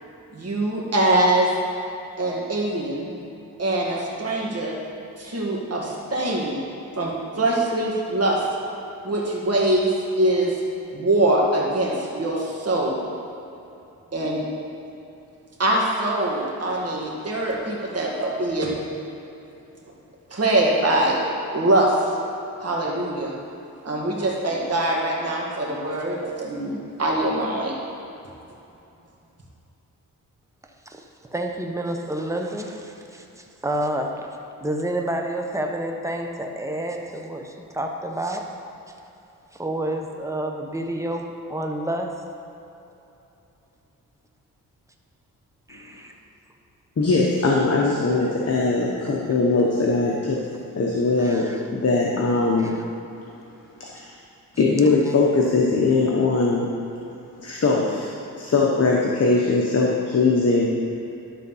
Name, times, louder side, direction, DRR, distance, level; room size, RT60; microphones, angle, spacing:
voice 1, 0.3-1.5 2.2-3.1 3.6-4.7 5.2-6.6 7.0-8.4 9.0-9.9 10.2-10.5 10.9-13.1 14.1-14.5 15.6-18.8 20.3-21.2 21.5-21.9 22.6-23.3 23.8-27.8, right 1 dB, 45° right, -3 dB, 2.2 m, -23 dB
voice 2, 30.9-34.3 34.6-38.5 39.5-42.2 45.7-46.1 51.2-51.6 52.6-52.8 55.1-55.2, right 1 dB, 10° right, 2 dB, 1.0 m, -29 dB
voice 3, 47.0-50.4 50.8-51.5 51.7-52.8 53.9-54.1 54.6-56.7 57.4-58.1 58.4-60.7, left 3 dB, 45° left, -2 dB, 1.1 m, -20 dB
12.0 x 4.1 x 5.6 m, 2.9 s
cardioid pair, 70°, 35 cm